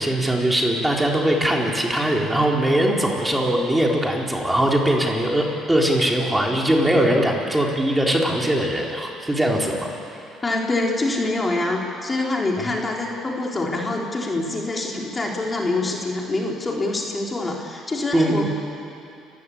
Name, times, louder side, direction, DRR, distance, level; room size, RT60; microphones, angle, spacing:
voice 1, 0.0-9.9 18.1-18.5, right 1 dB, 10° right, -1 dB, 3.9 m, -21 dB
voice 2, 10.4-18.5, left 2 dB, 25° left, -1 dB, 3.6 m, -25 dB
29.0 x 15.5 x 8.6 m, 2.7 s
supercardioid pair, 75°, 0 cm